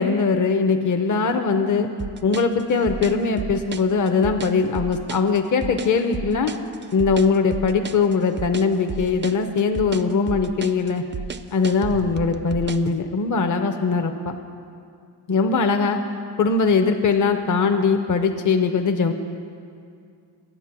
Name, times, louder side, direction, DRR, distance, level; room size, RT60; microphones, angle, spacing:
voice 1, 0.0-1.9 2.2-6.5 6.9-11.0 11.5-14.3 15.3-16.0 16.4-19.1, left 4 dB, 45° left, 5 dB, 0.7 m, -21 dB
sound 1, 2.0-12.9, right 6 dB, 30° right, 0.4 m, -33 dB
9.2 x 8.0 x 5.8 m, 2.3 s
cardioid pair, 55°, 43 cm